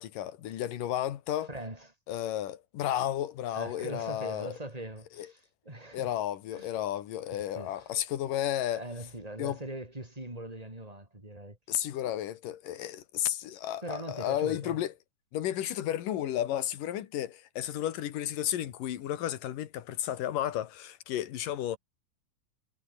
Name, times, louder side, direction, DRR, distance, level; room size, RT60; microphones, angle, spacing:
voice 1, 0.0-1.5 2.1-4.5 5.2-5.3 5.9-8.8 9.4-9.6 11.7-14.9 15.3-21.8, left 12 dB, 75° left, 3.2 m, -33 dB
voice 2, 1.5-1.9 3.5-6.1 6.5-6.7 7.3-7.9 8.7-11.6 13.8-14.8, right 1 dB, 10° right, 5.7 m, -41 dB
omnidirectional pair, 3.9 m